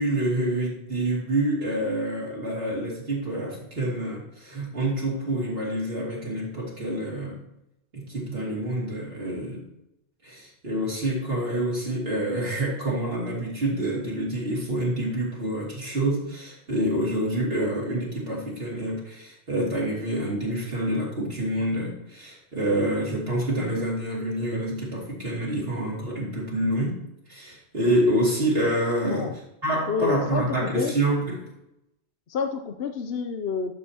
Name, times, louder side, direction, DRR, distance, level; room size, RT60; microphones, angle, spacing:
voice 1, 0.0-7.4 7.9-9.6 10.2-26.9 27.3-29.3 29.6-31.5, right 1 dB, 60° right, -5 dB, 2.8 m, -27 dB
voice 2, 29.9-30.9 32.3-33.7, left 6 dB, 65° left, 6 dB, 0.9 m, -28 dB
11.5 x 6.6 x 2.9 m, 0.85 s
omnidirectional pair, 1.1 m